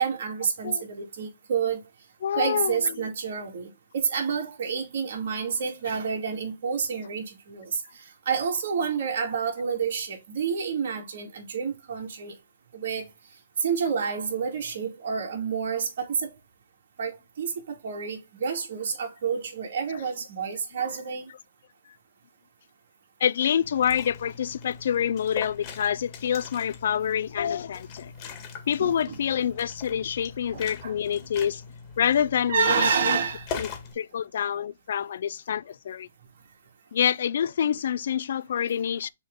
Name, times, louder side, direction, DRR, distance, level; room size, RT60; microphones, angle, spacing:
voice 1, 0.0-1.8 2.3-7.8 8.3-12.3 12.7-13.0 13.6-16.3 17.0-21.3 28.8-29.2 30.5-30.9 32.5-33.5, right 6 dB, 60° right, 2.4 m, -29 dB
voice 2, 2.2-2.8 23.2-28.1 28.7-31.6 32.0-33.2 33.6-33.7 34.0-36.1 36.9-39.1, left 9 dB, 60° left, 0.3 m, -27 dB
Liquid, 23.6-33.9, left 6 dB, 30° left, 2.0 m, -41 dB
6.8 x 3.7 x 3.9 m
hypercardioid pair, 145°, 0 cm